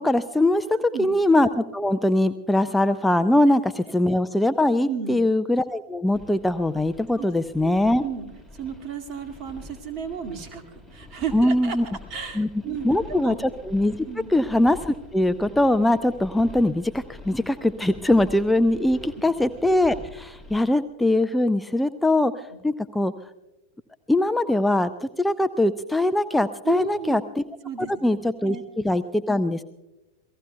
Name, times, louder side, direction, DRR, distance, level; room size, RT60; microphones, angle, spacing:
voice 1, 0.0-8.0 11.3-11.9 12.4-23.1 24.1-27.4 27.8-29.6, left 1 dB, 5° left, 12 dB, 0.4 m, -22 dB
voice 2, 0.7-1.1 4.9-5.2 7.2-7.3 7.6-8.3 8.5-11.8 12.1-13.4 14.0-14.4 18.9-19.2 26.6-27.2 27.6-27.9 28.5-28.6, right 7 dB, 35° right, 5 dB, 2.1 m, -33 dB
sound 1, 6.1-20.5, left 2 dB, 15° right, 5.5 m, -46 dB
28.5 x 18.0 x 2.3 m, 1.0 s
figure-of-eight pair, 90°, 0 cm